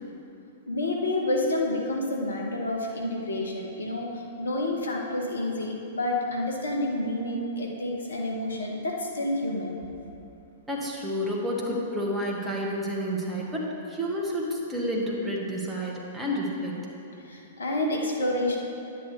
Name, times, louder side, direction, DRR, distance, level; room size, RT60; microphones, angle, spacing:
voice 1, 0.7-9.8 17.2-18.6, left 1 dB, 80° left, 0 dB, 1.3 m, -29 dB
voice 2, 10.7-16.8, equal, 10° right, -4 dB, 1.6 m, -30 dB
10.0 x 8.4 x 3.3 m, 2.8 s
figure-of-eight pair, 110°, 0 cm